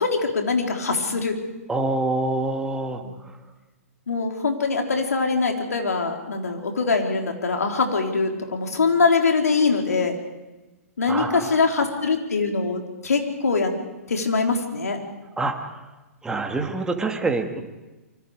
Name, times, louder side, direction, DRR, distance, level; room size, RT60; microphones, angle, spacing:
voice 1, 0.0-1.4 3.0-3.1 4.1-10.2 11.0-13.7 14.1-15.0, left 4 dB, 80° left, 3 dB, 3.9 m, -23 dB
voice 2, 1.7-3.0 11.1-11.5 15.4-15.6 16.2-17.6, right 2 dB, 10° right, 3 dB, 2.4 m, -25 dB
25.5 x 25.0 x 5.1 m, 1.1 s
hypercardioid pair, 120°, 8 cm